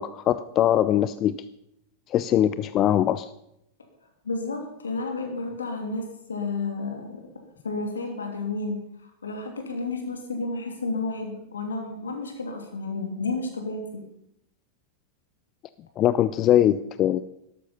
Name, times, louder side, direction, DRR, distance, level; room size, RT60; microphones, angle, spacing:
voice 1, 0.0-1.4 2.1-3.3 16.0-17.2, left 11 dB, 35° left, 15 dB, 0.4 m, -21 dB
voice 2, 4.2-8.8 9.2-13.9, left 3 dB, 70° left, 4 dB, 2.8 m, -31 dB
13.0 x 12.0 x 5.6 m, 0.78 s
figure-of-eight pair, 90°, 0 cm